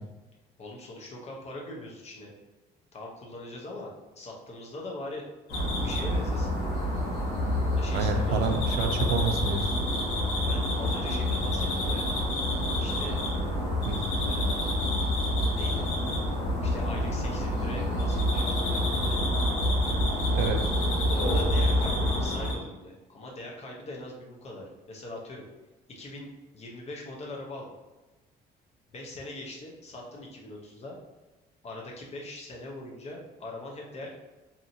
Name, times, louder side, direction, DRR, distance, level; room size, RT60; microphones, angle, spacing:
voice 1, 0.6-2.3 2.9-3.9 4.2-5.2 5.8-6.5 7.7-8.7 10.5-12.0 12.8-13.2 14.3-15.0 15.5-15.9 16.6-18.8 21.1-25.4 25.9-27.7 28.9-31.0 31.6-34.1, left 1 dB, 40° left, -2 dB, 0.8 m, -42 dB
sound 1, 5.5-22.5, left 1 dB, 85° left, 1.1 m, -27 dB
voice 2, 7.9-9.8 13.8-14.0 20.3-20.6, right 5 dB, 80° right, 5 dB, 0.4 m, -28 dB
2.8 x 2.6 x 2.7 m, 1.1 s
cardioid pair, 110°, 17 cm